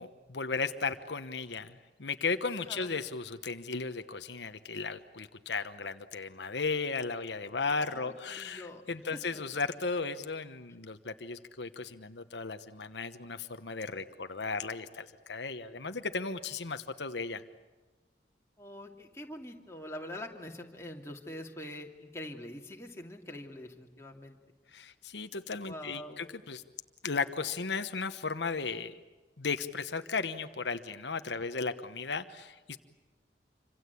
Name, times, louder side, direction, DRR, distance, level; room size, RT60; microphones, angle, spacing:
voice 1, 0.0-17.4 24.7-26.6 27.0-29.0 29.4-32.8, left 4 dB, 85° left, 9 dB, 1.2 m, -35 dB
voice 2, 7.8-8.8 9.1-9.4 18.6-24.4 25.7-26.2, left 1 dB, 15° left, 0 dB, 2.8 m, -44 dB
27.0 x 26.0 x 8.5 m, 1.2 s
head